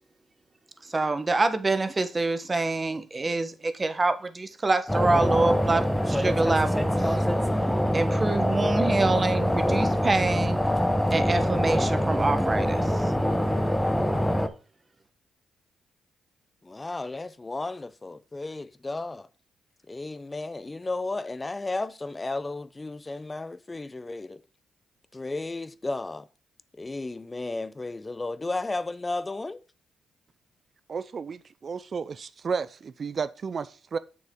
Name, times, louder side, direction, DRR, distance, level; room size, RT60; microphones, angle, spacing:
voice 1, 0.8-7.2 7.9-10.6 11.1-12.8, right 3 dB, 30° right, 1.1 m, -26 dB
sound 1, 4.9-14.5, equal, 5° left, 0.9 m, -24 dB
voice 2, 16.6-19.3 19.9-24.4 25.1-26.3 26.8-29.6, left 2 dB, 25° left, 0.6 m, -33 dB
voice 3, 30.9-34.0, right 5 dB, 50° right, 0.4 m, -32 dB
7.3 x 6.3 x 3.7 m
supercardioid pair, 65°, 0 cm